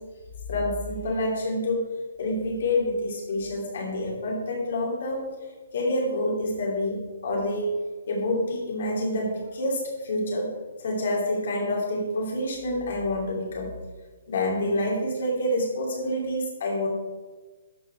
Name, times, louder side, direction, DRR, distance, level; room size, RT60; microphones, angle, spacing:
voice 1, 0.5-1.9 2.2-5.3 5.7-7.7 8.1-10.5 10.8-13.7 14.3-16.9, left 1 dB, 55° left, -1 dB, 2.6 m, -27 dB
12.5 x 4.3 x 4.4 m, 1.3 s
hypercardioid pair, 170°, 0 cm